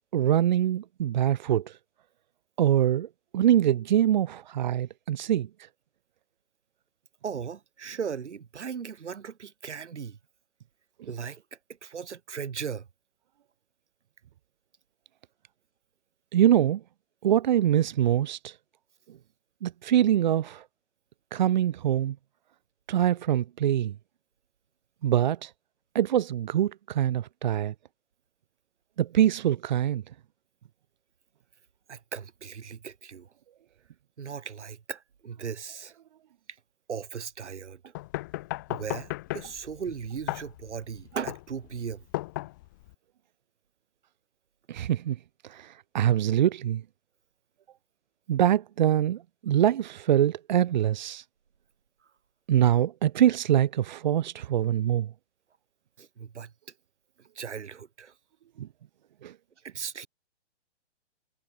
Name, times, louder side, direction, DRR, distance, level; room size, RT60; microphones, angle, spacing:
voice 1, 0.1-1.7 2.6-3.1 3.3-5.5 16.3-16.8 17.2-18.5 19.6-20.6 21.3-22.2 22.9-23.9 25.0-25.5 25.9-27.7 29.0-30.0 44.7-45.2 45.5-46.8 48.3-51.2 52.5-55.1 58.6-58.7 59.2-59.3, right 11 dB, 40° right, 2.2 m, -24 dB
voice 2, 7.2-10.2 11.0-12.9 31.9-33.3 34.2-36.0 36.9-37.9 38.7-42.0 56.0-56.5 57.2-58.1 59.6-60.1, right 7 dB, 75° right, 5.7 m, -37 dB
sound 1, 37.9-42.9, left 19 dB, 15° left, 0.9 m, -36 dB
hypercardioid pair, 170°, 35 cm